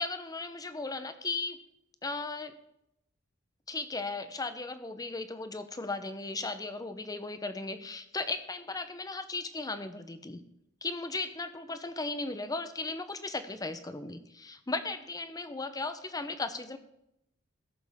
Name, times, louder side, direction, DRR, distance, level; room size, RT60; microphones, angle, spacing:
voice 1, 0.0-1.6 2.0-2.6 3.7-10.4 10.8-16.8, left 3 dB, 20° left, 10 dB, 0.7 m, -36 dB
17.0 x 6.9 x 3.6 m, 0.81 s
head